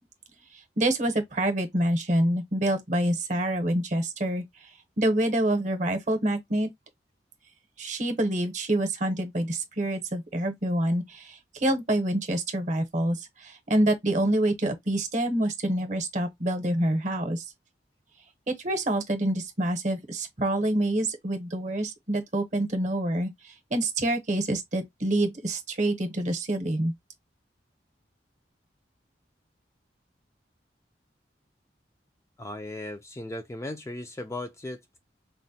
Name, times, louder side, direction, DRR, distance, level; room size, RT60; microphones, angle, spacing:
voice 1, 0.8-4.4 5.0-6.7 7.8-17.5 18.5-26.9, right 1 dB, 40° right, 0.8 m, -27 dB
voice 2, 32.4-35.0, left 1 dB, 15° left, 0.3 m, -37 dB
4.0 x 2.1 x 2.7 m
head